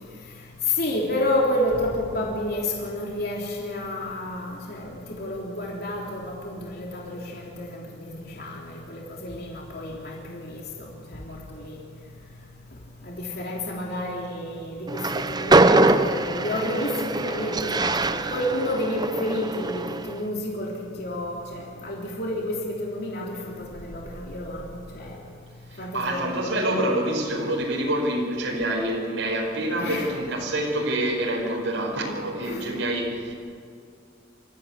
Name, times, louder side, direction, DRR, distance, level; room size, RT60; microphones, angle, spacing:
voice 1, 0.7-11.8 13.0-25.2 25.8-26.4 29.7-30.1 32.4-32.6, left 1 dB, 55° left, -2 dB, 3.3 m, -30 dB
Train, 14.9-20.2, right 2 dB, 20° right, 0.7 m, -23 dB
voice 2, 25.7-33.3, right 1 dB, 90° right, -1 dB, 4.8 m, -26 dB
25.5 x 14.5 x 8.3 m, 2.2 s
head